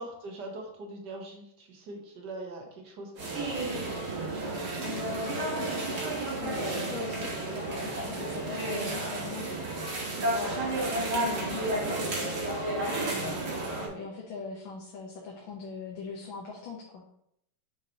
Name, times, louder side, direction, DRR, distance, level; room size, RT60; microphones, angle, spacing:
voice 1, 0.0-4.6 13.8-14.0, right 2 dB, 60° right, 1 dB, 1.8 m, -43 dB
sound 1, 3.2-13.9, right 2 dB, 85° right, 2.3 m, -32 dB
voice 2, 4.8-9.9 10.1-12.4 12.9-17.0, left 4 dB, 75° left, -3 dB, 1.7 m, -41 dB
5.9 x 5.7 x 2.9 m, 0.73 s
omnidirectional pair, 2.2 m